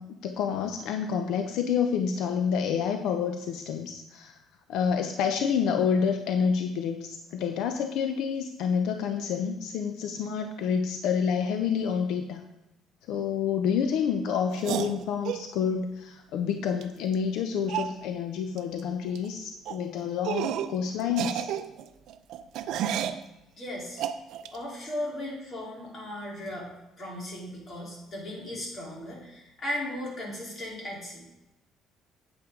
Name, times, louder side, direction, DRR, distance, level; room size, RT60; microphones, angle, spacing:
voice 1, 0.0-4.4 4.7-12.4 13.1-21.5, left 7 dB, 75° left, 6 dB, 0.7 m, -28 dB
sound 1, 14.6-15.4 16.8-16.9 17.1-17.2 17.7-17.9 18.6-18.8 19.1-19.3 19.7-19.8 20.2-20.8 21.1-23.2 24.0-24.6, right 10 dB, 70° right, 0.5 m, -31 dB
voice 2, 23.4-24.0 24.5-26.7 27.0-31.2, left 1 dB, 35° left, -3 dB, 3.5 m, -36 dB
8.8 x 8.8 x 3.8 m, 0.94 s
cardioid pair, 140°, 0 cm